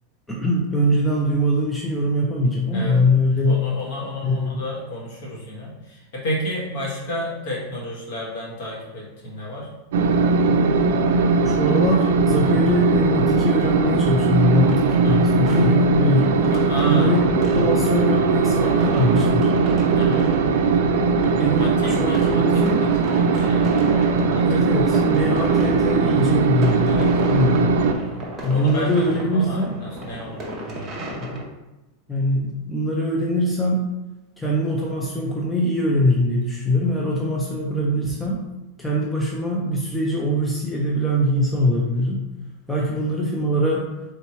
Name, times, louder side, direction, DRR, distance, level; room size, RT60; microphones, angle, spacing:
voice 1, 0.3-3.6 4.2-4.6 11.3-17.2 17.5-19.5 21.4-22.8 24.4-27.9 28.4-29.7 31.2-31.4 32.1-33.9 34.4-38.5 38.8-42.2 42.7-43.8, equal, 5° left, -3 dB, 0.3 m, -22 dB
voice 2, 3.4-9.7 15.0-15.3 16.4-17.1 19.9-20.4 21.5-22.9 23.1-25.0 26.8-27.1 28.0-31.4 42.8-43.0, equal, 50° left, -4 dB, 1.4 m, -32 dB
sound 1, 9.9-27.9, right 4 dB, 75° right, 0.4 m, -19 dB
sound 2, 14.4-31.4, right 1 dB, 15° right, 0.7 m, -33 dB
3.5 x 2.9 x 4.3 m, 1.0 s
supercardioid pair, 180°, 0 cm